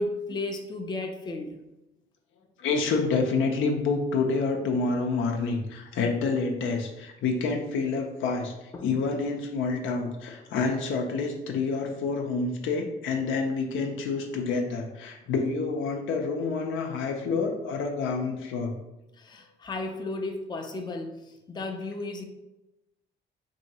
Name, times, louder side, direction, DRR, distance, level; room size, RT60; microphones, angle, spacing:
voice 1, 0.0-1.6 8.7-8.9 17.3-17.4 19.1-22.2, left 2 dB, 20° left, 4 dB, 0.4 m, -34 dB
voice 2, 2.6-18.7, left 4 dB, 80° left, 2 dB, 0.6 m, -28 dB
2.7 x 2.7 x 4.1 m, 0.96 s
cardioid pair, 90°, 20 cm